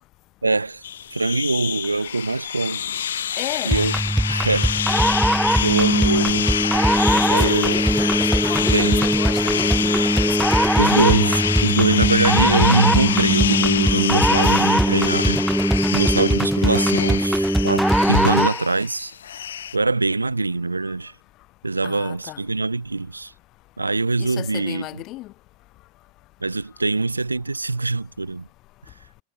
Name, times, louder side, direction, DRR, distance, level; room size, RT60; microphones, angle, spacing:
voice 1, 0.4-0.8 1.1-2.8 3.6-3.9 4.3-4.8 5.6-6.5 7.3-7.8 8.7-9.1 10.8-15.5 15.9-19.1 19.7-21.1 21.6-23.3 23.8-25.0 26.4-28.5, right 3 dB, 80° right, 1.7 m, -23 dB
sound 1, 0.8-19.8, left 9 dB, 65° left, 1.6 m, -26 dB
voice 2, 3.4-3.8 6.1-6.4 7.0-10.9 14.4-14.9 21.8-22.4 24.2-25.3, left 18 dB, 40° left, 3.3 m, -34 dB
sound 2, 3.7-18.7, right 1 dB, 5° right, 0.6 m, -20 dB
figure-of-eight pair, 90°, 0 cm